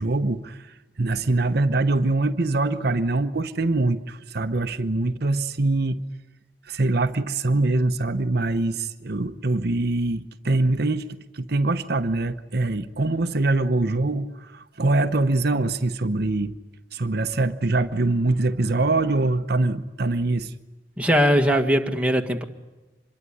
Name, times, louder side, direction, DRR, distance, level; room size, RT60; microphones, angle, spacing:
voice 1, 0.0-6.0 6.7-16.5 16.9-20.5, right 2 dB, 60° right, 9 dB, 1.0 m, -23 dB
voice 2, 21.0-22.4, equal, 5° right, 3 dB, 1.7 m, -20 dB
25.5 x 22.0 x 9.9 m, 1.1 s
head